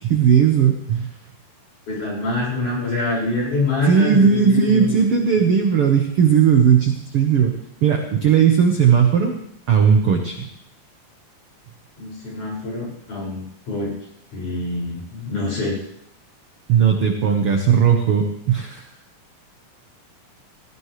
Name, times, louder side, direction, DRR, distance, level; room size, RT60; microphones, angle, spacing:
voice 1, 0.0-1.1 3.8-9.3 9.7-10.5 16.7-18.8, right 7 dB, 70° right, 3 dB, 1.3 m, -17 dB
voice 2, 1.9-4.9 12.0-13.9 14.3-15.8, left 2 dB, 55° left, -4 dB, 7.3 m, -25 dB
17.5 x 16.5 x 3.3 m, 0.75 s
omnidirectional pair, 4.3 m